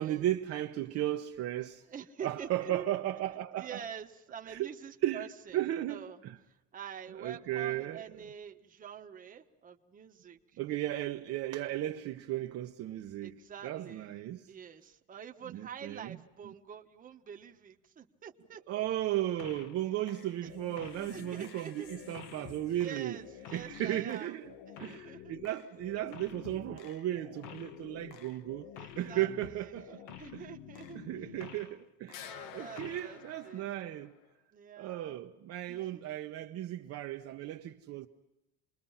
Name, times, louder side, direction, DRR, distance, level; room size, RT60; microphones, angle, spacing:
voice 1, 0.0-1.8 2.2-3.8 4.5-4.7 5.0-6.4 7.2-8.0 10.6-14.5 15.5-16.2 18.7-23.2 23.5-24.5 24.8-30.5 30.9-34.1 34.8-38.1, right 13 dB, 45° right, 1.0 m, -35 dB
voice 2, 1.9-2.9 3.6-5.6 5.9-10.4 13.2-14.1 14.5-18.8 20.4-20.5 21.1-21.9 22.7-24.4 24.7-25.3 28.7-29.8 30.2-31.0 32.2-33.7 34.5-35.2 35.7-36.0, right 7 dB, 25° right, 1.3 m, -47 dB
sound 1, 19.4-19.8 20.1-31.8 32.1-34.3, left 9 dB, 75° left, 1.6 m, -49 dB
29.0 x 22.0 x 5.7 m
cardioid pair, 155°, 35 cm